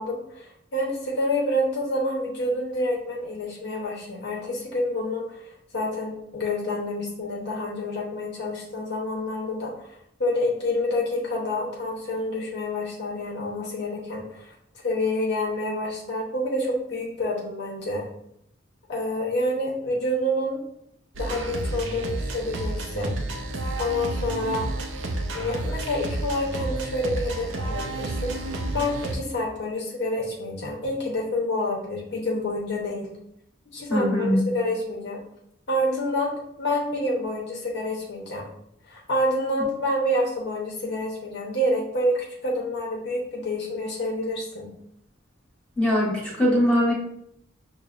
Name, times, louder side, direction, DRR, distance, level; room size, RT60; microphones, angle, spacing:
voice 1, 0.0-9.9 10.2-14.5 14.8-18.1 18.9-20.6 21.2-23.2 23.8-24.7 25.3-33.1 33.7-35.2 35.7-36.3 36.6-38.4 38.9-44.7, left 1 dB, 60° left, -3 dB, 0.8 m, -28 dB
sound 1, 21.1-29.2, right 2 dB, 75° right, 0.6 m, -30 dB
voice 2, 33.9-34.4 45.8-46.9, equal, 5° left, -6 dB, 1.3 m, -21 dB
6.2 x 2.1 x 2.4 m, 0.76 s
head